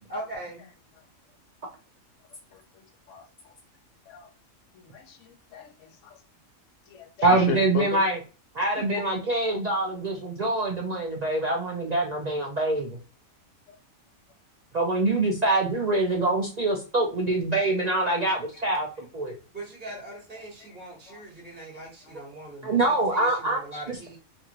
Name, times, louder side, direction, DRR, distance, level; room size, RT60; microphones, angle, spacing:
voice 1, 0.1-0.7 19.5-24.2, right 1 dB, 10° right, -6 dB, 1.0 m, -40 dB
voice 2, 2.5-3.5 4.1-4.3 4.7-6.2 6.9-8.1 8.8-9.0 13.7-13.8 18.2-18.7 20.1-20.2 20.6-20.8 21.1-21.2 21.7-22.1, left 6 dB, 70° left, 5 dB, 0.9 m, -38 dB
voice 3, 7.2-8.2 8.5-13.0 14.7-19.4 22.6-24.0, right 2 dB, 85° right, -1 dB, 0.3 m, -25 dB
2.6 x 2.5 x 2.8 m, 0.33 s
omnidirectional pair, 1.4 m